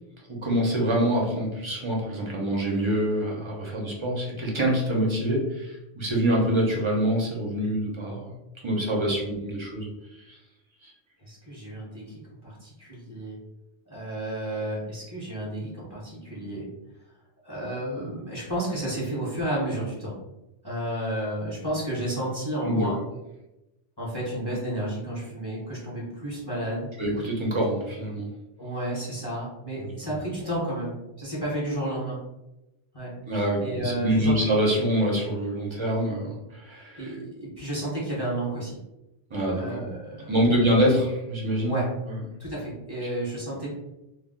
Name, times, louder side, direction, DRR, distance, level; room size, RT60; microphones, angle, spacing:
voice 1, 0.3-8.3 8.6-9.9 10.3-10.4 10.8-10.9 22.6-22.9 27.0-28.3 33.3-37.1 39.3-39.8 40.3-41.8 42.1-42.2, right 1 dB, 35° right, -2 dB, 0.5 m, -25 dB
voice 2, 8.9-9.3 11.2-13.4 13.9-16.7 17.4-20.1 20.6-23.0 24.0-26.9 28.6-32.2 32.9-33.1 33.6-34.4 37.0-38.8 39.5-40.7 41.7-41.8 42.4-43.7, right 1 dB, 25° left, -6 dB, 0.7 m, -32 dB
2.3 x 2.1 x 3.5 m, 0.96 s
omnidirectional pair, 1.2 m